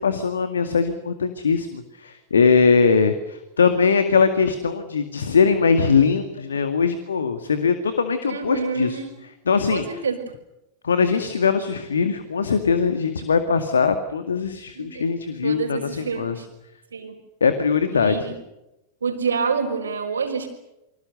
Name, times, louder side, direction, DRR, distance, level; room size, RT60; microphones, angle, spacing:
voice 1, 0.0-9.0 9.5-9.8 10.8-16.4 17.4-18.2, left 5 dB, 70° left, 9 dB, 2.1 m, -21 dB
voice 2, 8.2-9.1 9.7-10.2 14.7-15.1 15.4-16.5 16.9-17.2 17.9-18.4 19.0-20.5, right 5 dB, 75° right, -3 dB, 4.4 m, -27 dB
29.0 x 25.0 x 6.7 m, 0.94 s
figure-of-eight pair, 90°, 0 cm